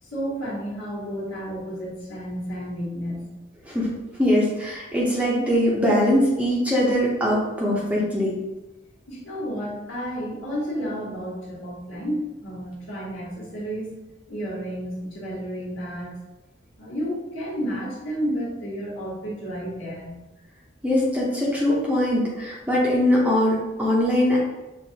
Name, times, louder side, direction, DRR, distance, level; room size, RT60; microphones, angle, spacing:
voice 1, 0.0-3.3 9.1-13.9 14.3-16.1 16.8-20.2, equal, 90° left, -9 dB, 1.5 m, -31 dB
voice 2, 4.2-8.4 20.8-24.4, left 1 dB, 5° right, -5 dB, 0.6 m, -21 dB
6.3 x 2.4 x 2.8 m, 1.1 s
head